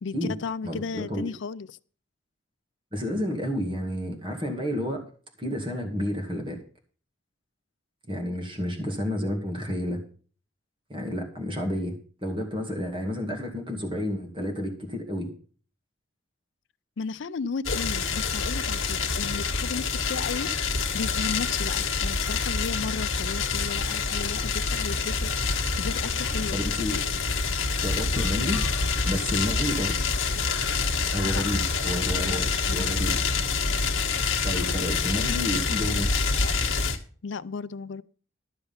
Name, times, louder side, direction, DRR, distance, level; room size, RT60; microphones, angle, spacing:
voice 1, 0.0-1.8 8.3-8.4 17.0-20.5 20.9-26.6 31.3-31.4 32.2-32.9 33.3-33.4 37.2-38.0, left 5 dB, 65° left, 0.4 m, -35 dB
voice 2, 0.6-1.3 2.9-5.0 5.4-6.6 8.1-10.0 10.9-11.9 12.2-15.3 26.5-27.0 27.8-28.6 29.0-30.0 31.1-33.1 34.4-36.1, equal, 25° right, 2.2 m, -30 dB
sound 1, 17.6-37.0, left 4 dB, 80° left, 1.4 m, -27 dB
12.5 x 6.8 x 5.6 m
head